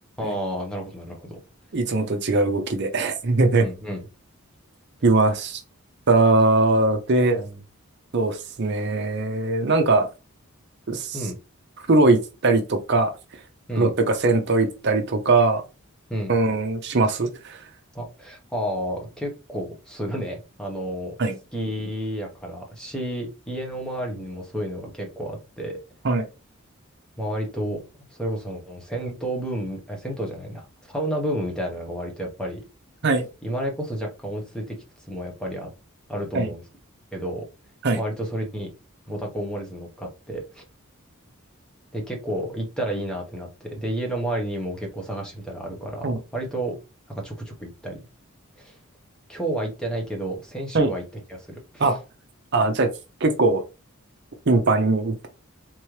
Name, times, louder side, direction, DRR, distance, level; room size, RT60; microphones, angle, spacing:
voice 1, 0.2-1.4 3.5-4.1 7.3-7.6 11.1-11.4 13.7-13.9 16.1-16.3 17.9-21.1 21.5-25.8 27.2-27.8 28.2-32.6 33.4-34.7 35.1-35.7 36.1-36.6 37.1-37.4 38.0-38.7 39.1-40.6 41.9-46.7 47.1-48.0 48.6-48.8 49.3-51.0 51.3-51.9, right 1 dB, 5° left, 0.9 m, -31 dB
voice 2, 1.7-3.7 5.0-5.6 6.1-7.4 8.1-10.1 10.9-11.2 11.9-13.1 13.8-15.6 16.3-17.6 21.2-21.4 26.0-26.2 33.0-33.3 36.3-36.5 37.8-38.0 46.0-46.2 50.7-50.9 51.8-52.0 52.5-52.9 53.2-53.6 54.5-55.3, right 2 dB, 50° right, 0.6 m, -20 dB
3.6 x 3.0 x 3.1 m
head